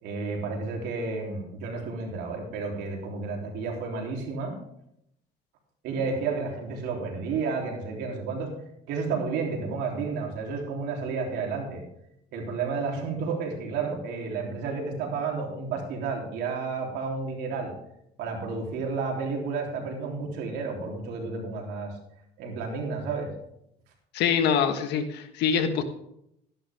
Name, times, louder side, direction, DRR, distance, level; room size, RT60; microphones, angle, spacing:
voice 1, 0.0-4.6 5.8-8.5 8.9-11.8 12.3-17.7 18.2-21.9 22.4-23.3, right 4 dB, 85° right, 0 dB, 3.3 m, -31 dB
voice 2, 24.1-25.8, left 7 dB, 85° left, 7 dB, 1.4 m, -24 dB
13.0 x 11.0 x 3.6 m, 0.77 s
cardioid pair, 110°, 17 cm